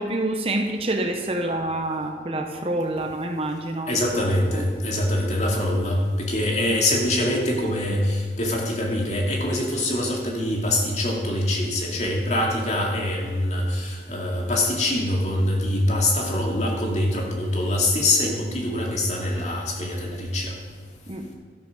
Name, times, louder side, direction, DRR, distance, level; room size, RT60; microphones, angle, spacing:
voice 1, 0.0-4.0 4.5-4.7 4.9-5.0 21.1-21.3, right 1 dB, 30° right, 4 dB, 1.0 m, -27 dB
voice 2, 3.9-20.5, left 1 dB, 40° left, -1 dB, 2.4 m, -24 dB
12.5 x 12.0 x 5.0 m, 1.5 s
head